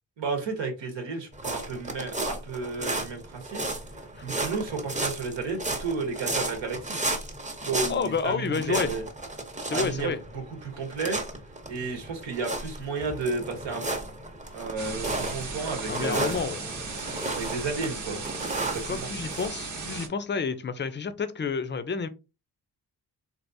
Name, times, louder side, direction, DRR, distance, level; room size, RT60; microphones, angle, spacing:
voice 1, 0.2-3.6 4.2-7.0 7.6-9.0 9.7-11.2 11.7-14.1 14.5-16.4 17.4-18.2 18.7-19.1, right 4 dB, 75° right, 1.1 m, -32 dB
sound 1, 1.3-19.5, right 2 dB, 15° right, 0.8 m, -34 dB
voice 2, 7.9-8.9 9.6-10.2 15.9-16.6 18.8-22.1, left 5 dB, 25° left, 0.5 m, -29 dB
sound 2, 14.8-20.1, right 4 dB, 40° right, 0.9 m, -36 dB
3.4 x 2.5 x 2.6 m
supercardioid pair, 50°, 45 cm